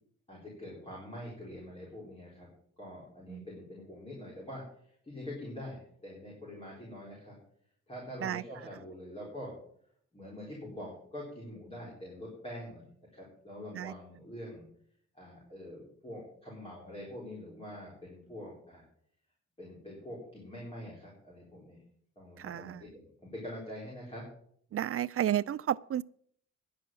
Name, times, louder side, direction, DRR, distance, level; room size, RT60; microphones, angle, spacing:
voice 1, 0.3-7.4 7.9-9.5 10.1-12.9 13.1-14.6 15.1-18.8 19.6-21.8 22.2-24.2, left 1 dB, 20° left, 4.0 m, -45 dB
voice 2, 22.4-22.8 24.7-26.0, right 11 dB, 50° right, 0.4 m, -32 dB
10.5 x 7.7 x 7.5 m
wide cardioid pair, 140°, 29 cm